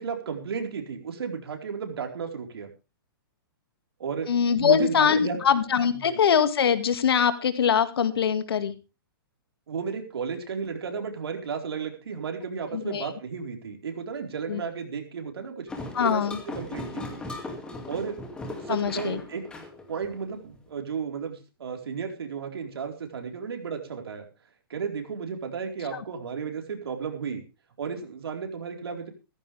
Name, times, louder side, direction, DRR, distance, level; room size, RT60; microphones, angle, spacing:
voice 1, 0.0-2.7 4.0-4.3 4.6-5.4 5.9-6.2 9.7-15.7 16.0-17.2 17.9-18.2 18.6-19.4 19.9-24.2 24.7-27.4 27.8-29.1, right 6 dB, 80° right, 3 dB, 4.3 m, -33 dB
voice 2, 4.3-8.8 12.7-13.1 14.5-14.6 15.9-16.4 18.7-19.2, left 7 dB, 75° left, 10 dB, 2.1 m, -23 dB
sound 1, 15.7-20.6, left 2 dB, 5° left, 2.4 m, -38 dB
16.0 x 14.5 x 3.4 m, 0.30 s
hypercardioid pair, 160°, 13 cm